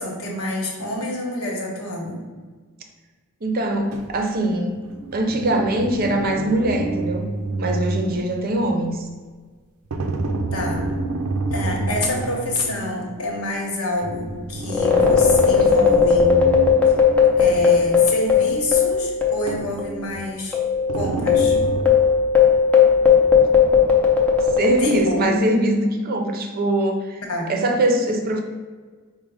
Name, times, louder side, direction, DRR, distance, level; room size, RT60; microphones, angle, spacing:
voice 1, 0.0-2.2 10.5-10.8 11.5-16.3 17.4-20.6 20.9-21.6 24.8-25.2 27.3-27.5, left 1 dB, 80° left, -1 dB, 1.1 m, -27 dB
voice 2, 3.4-4.8 5.1-7.3 7.6-9.1 24.6-27.2 27.5-28.4, right 1 dB, 40° right, 3 dB, 0.6 m, -22 dB
sound 1, 3.9-4.2 4.8-8.8 9.9-12.9 14.0-18.0 18.3-18.4 19.5-20.3 20.9-21.8, right 2 dB, 85° right, 0.5 m, -29 dB
sound 2, 14.7-19.5 19.8-19.9 20.5-25.3, left 6 dB, 5° left, 0.6 m, -16 dB
5.2 x 2.1 x 4.7 m, 1.4 s
head